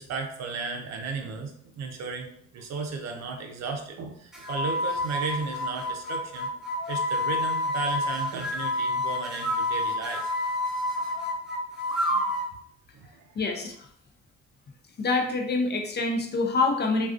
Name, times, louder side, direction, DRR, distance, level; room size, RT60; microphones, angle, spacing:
voice 1, 0.0-6.5 6.9-10.3 12.9-13.4, right 4 dB, 65° right, 3 dB, 0.6 m, -35 dB
sound 1, 4.3-12.5, left 1 dB, ahead, 0.7 m, -29 dB
voice 2, 13.4-13.7 15.0-17.1, left 3 dB, 35° left, 3 dB, 0.5 m, -26 dB
2.3 x 2.3 x 2.3 m, 0.66 s
supercardioid pair, 80°, 29 cm